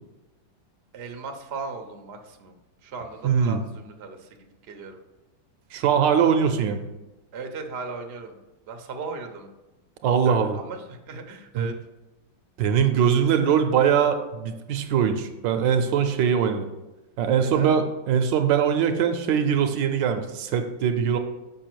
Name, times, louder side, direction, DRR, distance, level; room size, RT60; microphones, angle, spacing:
voice 1, 0.9-2.5 2.8-5.0 7.3-8.4 8.7-9.5 10.2-11.8 17.4-17.7, right 4 dB, 55° right, 4 dB, 0.7 m, -37 dB
voice 2, 3.2-3.6 5.7-6.8 10.0-10.6 11.5-11.7 12.6-16.7 17.2-21.2, right 7 dB, 75° right, 7 dB, 1.3 m, -22 dB
6.9 x 5.5 x 4.5 m, 1.0 s
omnidirectional pair, 2.1 m